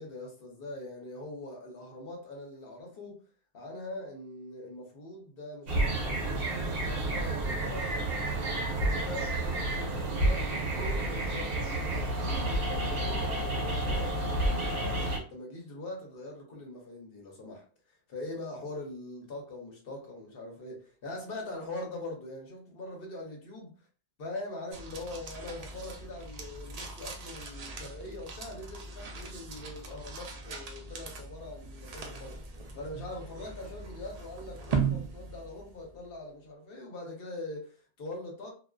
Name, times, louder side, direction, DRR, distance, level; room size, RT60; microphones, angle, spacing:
voice 1, 0.0-3.2 3.5-23.7 24.2-32.4 32.7-38.5, left 2 dB, 55° left, 0.9 m, -42 dB
sound 1, 5.7-15.2, right 1 dB, 60° right, 0.9 m, -30 dB
sound 2, 24.7-36.1, right 5 dB, 75° right, 0.3 m, -39 dB
2.4 x 2.3 x 2.2 m
omnidirectional pair, 1.2 m